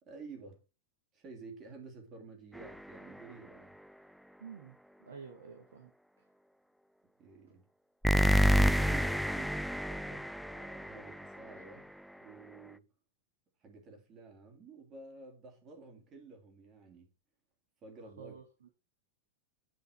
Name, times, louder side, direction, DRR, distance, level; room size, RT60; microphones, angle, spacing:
voice 1, 0.0-0.6 1.1-3.8 7.2-7.7 8.5-11.9 12.2-12.9 13.6-17.1 17.8-18.3, right 4 dB, 30° right, 3.1 m, -51 dB
sound 1, 2.5-3.2 8.0-11.7, equal, ahead, 0.3 m, -29 dB
voice 2, 4.4-5.9 18.0-18.7, right 6 dB, 65° right, 1.7 m, -50 dB
9.6 x 5.4 x 4.9 m
figure-of-eight pair, 90°, 0 cm